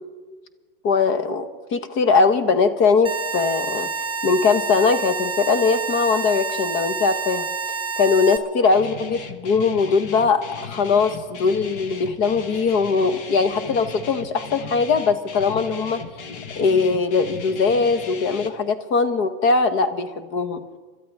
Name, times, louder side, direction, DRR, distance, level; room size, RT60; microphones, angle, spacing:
voice 1, 0.8-3.9 4.2-7.5 8.0-16.0 16.6-20.6, left 4 dB, 40° left, 12 dB, 1.0 m, -20 dB
sound 1, 3.0-8.4, right 4 dB, 15° right, 1.2 m, -28 dB
Guitar, 8.7-18.5, left 5 dB, 60° left, 1.4 m, -37 dB
26.5 x 13.0 x 3.5 m, 1.4 s
supercardioid pair, 125°, 30 cm